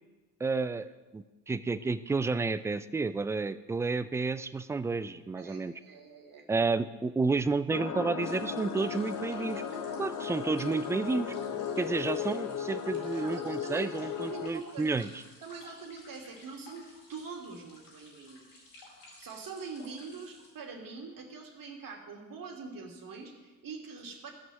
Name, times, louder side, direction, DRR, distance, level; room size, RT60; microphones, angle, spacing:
voice 1, 0.4-0.9 1.1-5.7 6.5-9.6 10.0-11.4 11.8-15.1, right 3 dB, 5° right, 13 dB, 0.3 m, -31 dB
voice 2, 5.3-6.4 12.8-13.9 14.2-15.1 15.4-18.6 19.2-24.3, right 5 dB, 45° right, 2 dB, 2.7 m, -44 dB
sound 1, 7.7-14.5, left 7 dB, 35° left, 1.4 m, -36 dB
sound 2, 8.2-20.5, left 2 dB, 60° left, 4.9 m, -55 dB
15.0 x 6.1 x 7.2 m, 1.3 s
figure-of-eight pair, 55°, 48 cm